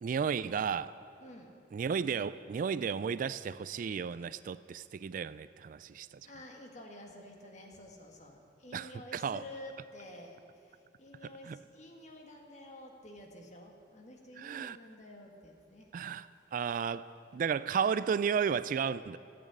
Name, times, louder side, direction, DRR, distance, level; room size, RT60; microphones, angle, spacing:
voice 1, 0.0-1.0 1.7-6.2 8.7-9.4 11.2-11.6 14.4-14.8 15.9-19.2, right 6 dB, 50° right, 16 dB, 0.3 m, -33 dB
voice 2, 1.2-1.6 6.2-15.9, left 1 dB, 40° left, 2 dB, 1.8 m, -50 dB
14.0 x 8.8 x 8.3 m, 2.6 s
head